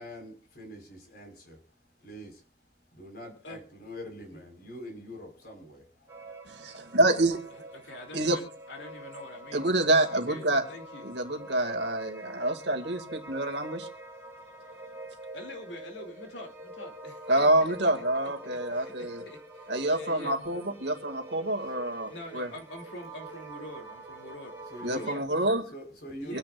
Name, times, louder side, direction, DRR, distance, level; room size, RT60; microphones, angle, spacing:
voice 1, 0.0-2.5 2.9-6.3 21.4-21.5 24.7-25.1 25.7-26.4, equal, 55° left, 3 dB, 4.9 m, -45 dB
sound 1, 6.1-25.2, right 1 dB, 15° right, 2.8 m, -45 dB
voice 2, 6.5-7.4 8.1-8.4 9.5-10.6 11.0-13.9 17.3-19.2 19.7-22.1 22.3-22.5 24.8-25.6 26.3-26.4, right 1 dB, 65° right, 4 dB, 2.2 m, -27 dB
voice 3, 7.5-11.0 15.3-17.8 18.7-20.4 22.1-24.5 24.9-25.4 26.2-26.4, left 1 dB, 70° left, 3 dB, 2.9 m, -45 dB
26.0 x 10.5 x 2.5 m, 0.34 s
head